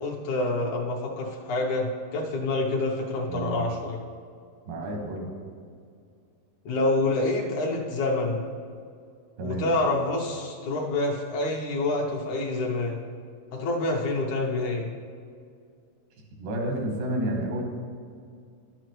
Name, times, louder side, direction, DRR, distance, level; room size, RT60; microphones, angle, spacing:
voice 1, 0.0-4.0 6.7-8.4 9.4-13.0 13.5-14.9, left 2 dB, 70° left, -1 dB, 2.0 m, -27 dB
voice 2, 3.3-3.6 4.7-5.3 9.4-9.7 16.4-17.6, right 1 dB, 85° right, 1 dB, 3.0 m, -30 dB
12.0 x 7.8 x 3.1 m, 2.2 s
omnidirectional pair, 3.8 m